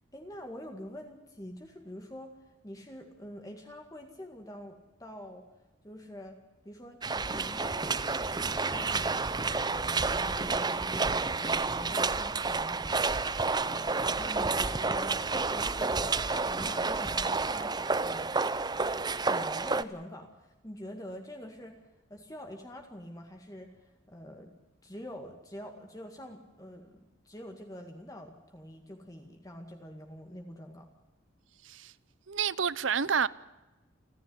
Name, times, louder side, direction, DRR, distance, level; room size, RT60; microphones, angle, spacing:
voice 1, 0.1-2.4 2.6-5.5 5.8-6.4 6.7-18.4 19.2-21.8 22.1-24.5 24.8-30.9, equal, 20° left, 2.0 m, -46 dB
sound 1, 7.0-19.8, right 4 dB, 20° right, 0.7 m, -30 dB
voice 2, 31.6-31.9 32.3-33.3, right 6 dB, 80° right, 0.8 m, -29 dB
29.0 x 11.0 x 9.5 m
head